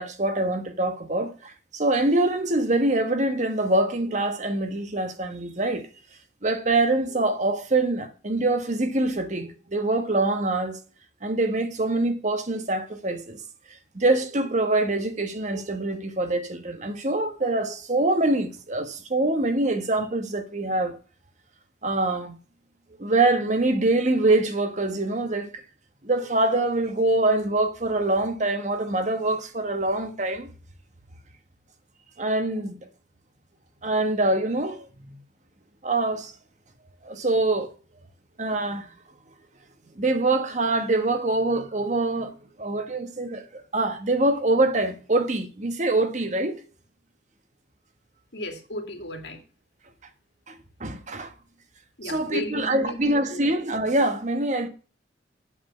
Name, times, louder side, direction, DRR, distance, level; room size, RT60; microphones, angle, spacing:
voice 1, 0.0-5.9 6.4-10.8 11.2-13.4 13.9-21.0 21.8-22.4 23.0-25.6 26.0-30.5 32.2-32.8 33.8-35.2 35.8-36.3 37.0-37.7 38.4-38.9 40.0-46.6 50.5-51.3 52.0-54.7, right 2 dB, 40° right, 1.3 m, -24 dB
voice 2, 48.3-49.4 52.0-53.5, left 1 dB, 65° left, 2.5 m, -34 dB
8.7 x 8.0 x 5.6 m
head